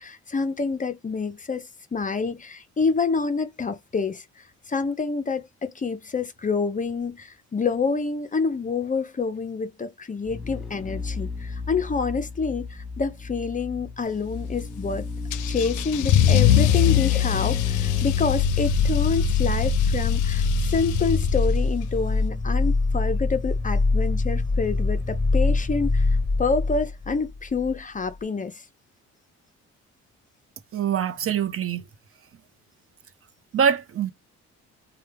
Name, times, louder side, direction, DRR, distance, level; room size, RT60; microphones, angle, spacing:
voice 1, 0.0-15.0 15.5-28.6, left 4 dB, 25° left, 0.5 m, -27 dB
sound 1, 10.2-27.8 28.0-28.1, left 3 dB, ahead, 0.8 m, -27 dB
Car / Engine starting / Accelerating revving vroom, 15.3-21.8, left 10 dB, 80° left, 0.5 m, -22 dB
voice 2, 30.7-31.8 33.5-34.1, right 8 dB, 45° right, 0.7 m, -24 dB
3.2 x 2.2 x 3.3 m
cardioid pair, 90°, 30 cm